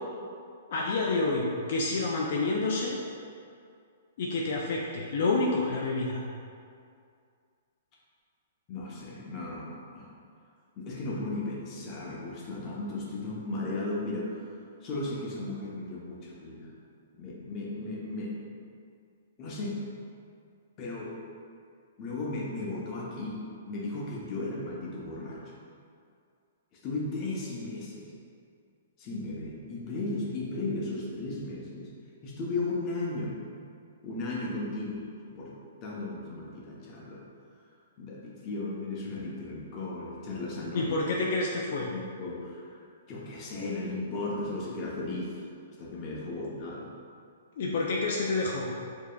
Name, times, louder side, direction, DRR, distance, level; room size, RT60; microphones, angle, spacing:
voice 1, 0.7-3.0 4.2-6.2 40.7-41.9 47.6-48.7, left 3 dB, 60° left, -2 dB, 0.4 m, -28 dB
voice 2, 8.7-10.1 10.8-14.5 14.8-16.7 17.2-18.3 19.4-19.8 20.8-21.1 22.0-23.4 23.7-25.5 26.8-28.1 29.0-31.9 32.2-33.3 34.0-35.5 35.8-37.2 38.0-40.9 41.9-45.4 45.8-46.9, left 2 dB, 35° left, -4 dB, 0.8 m, -35 dB
4.8 x 2.8 x 2.3 m, 2.3 s
hypercardioid pair, 135°, 0 cm